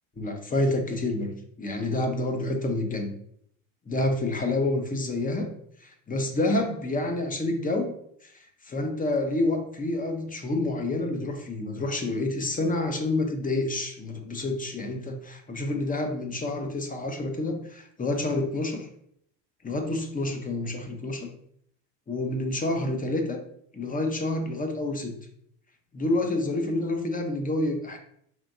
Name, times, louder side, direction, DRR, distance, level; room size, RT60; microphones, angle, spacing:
voice 1, 0.2-3.1 3.9-5.5 5.8-7.9 8.2-8.3 8.7-18.9 19.6-21.3 22.1-23.4 23.7-25.2 25.9-28.0, left 2 dB, 15° left, 5 dB, 0.8 m, -28 dB
4.5 x 3.3 x 2.6 m, 0.68 s
hypercardioid pair, 80°, 48 cm